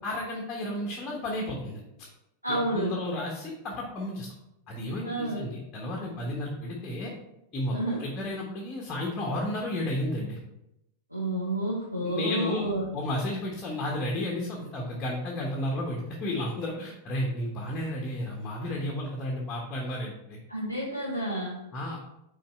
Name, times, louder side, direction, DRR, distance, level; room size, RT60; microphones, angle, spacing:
voice 1, 0.0-1.8 2.5-4.3 4.7-7.1 7.5-10.4 12.0-12.6 12.9-20.4 21.7-22.0, left 1 dB, 25° left, -1 dB, 1.2 m, -32 dB
voice 2, 2.4-2.9 5.0-5.5 7.7-8.0 11.1-12.9 20.5-21.6, right 1 dB, 90° right, -4 dB, 1.1 m, -30 dB
5.8 x 4.2 x 4.5 m, 0.86 s
figure-of-eight pair, 90°, 0 cm